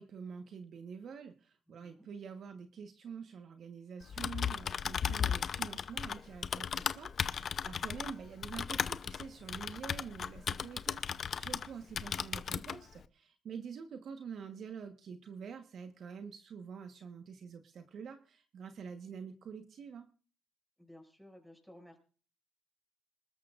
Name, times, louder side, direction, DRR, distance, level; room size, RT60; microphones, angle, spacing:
voice 1, 0.0-20.1, right 6 dB, 60° right, 6 dB, 1.3 m, -47 dB
voice 2, 1.7-2.1 7.6-7.9 20.8-22.0, left 1 dB, ahead, 3 dB, 6.3 m, -56 dB
Typing, 4.0-11.7 12.0-12.8, left 7 dB, 50° left, 0.7 m, -36 dB
26.5 x 13.0 x 2.5 m, 0.40 s
supercardioid pair, 75°, 0 cm